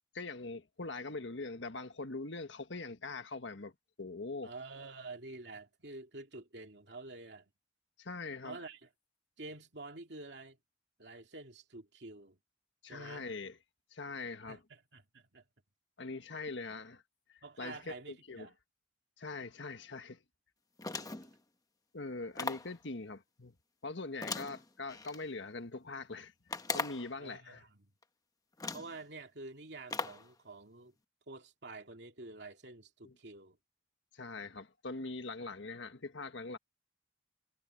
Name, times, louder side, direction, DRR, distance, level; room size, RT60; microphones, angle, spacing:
voice 1, 0.1-3.7 4.0-4.5 8.0-8.6 12.8-13.6 13.9-14.6 16.0-17.0 17.3-18.5 19.2-20.2 21.9-23.5 23.8-26.3 26.7-27.6 33.0-33.1 34.1-36.6, left 3 dB, 85° left, 1.6 m, -42 dB
voice 2, 4.4-7.5 8.4-8.9 9.4-10.6 11.0-12.4 12.8-13.3 14.5-15.4 16.5-16.6 17.4-18.5 21.0-21.3 27.2-27.9 28.7-30.9 31.3-33.6, right 3 dB, 65° right, 2.7 m, -49 dB
sound 1, 20.8-21.4 22.4-22.8 24.2-25.2 26.5-27.1 28.0-28.1 28.6-29.0 29.9-30.3, left 4 dB, 20° left, 1.0 m, -38 dB
head